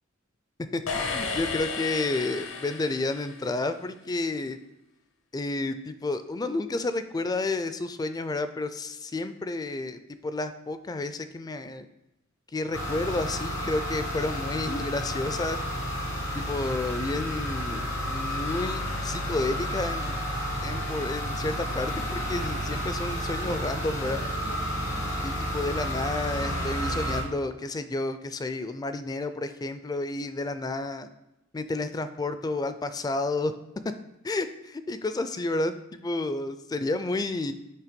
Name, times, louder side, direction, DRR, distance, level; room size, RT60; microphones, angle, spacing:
voice 1, 0.7-4.6 5.3-11.9 12.5-15.6 16.3-20.2 20.6-24.2 25.2-31.1 31.5-33.5 34.2-37.5, left 2 dB, 20° left, 11 dB, 0.4 m, -31 dB
sound 1, 0.9-3.7, left 4 dB, 70° left, 0.8 m, -34 dB
sound 2, 12.7-27.2, equal, 90° left, 2.5 m, -31 dB
7.4 x 3.3 x 5.2 m, 0.91 s
head